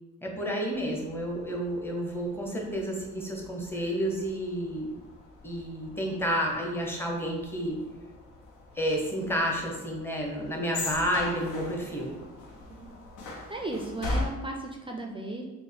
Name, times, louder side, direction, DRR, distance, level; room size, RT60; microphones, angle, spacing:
voice 1, 0.2-4.9 5.4-7.8 8.8-12.1, equal, 5° left, -1 dB, 0.8 m, -30 dB
sound 1, 0.7-14.2, left 2 dB, 85° left, 0.8 m, -41 dB
voice 2, 13.5-15.4, right 2 dB, 20° right, 2 dB, 0.4 m, -35 dB
4.2 x 2.1 x 3.4 m, 1.2 s
cardioid pair, 90°, 30 cm